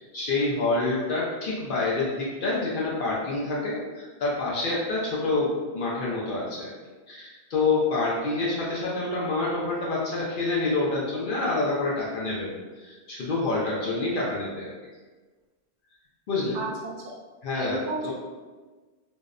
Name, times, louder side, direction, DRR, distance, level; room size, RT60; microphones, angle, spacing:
voice 1, 0.0-6.7 7.1-14.7 16.3-16.6 17.4-18.1, left 3 dB, 60° left, -5 dB, 0.6 m, -27 dB
voice 2, 16.5-17.1 17.6-18.1, right 2 dB, 90° right, -1 dB, 0.9 m, -33 dB
2.7 x 2.0 x 2.4 m, 1.3 s
omnidirectional pair, 1.2 m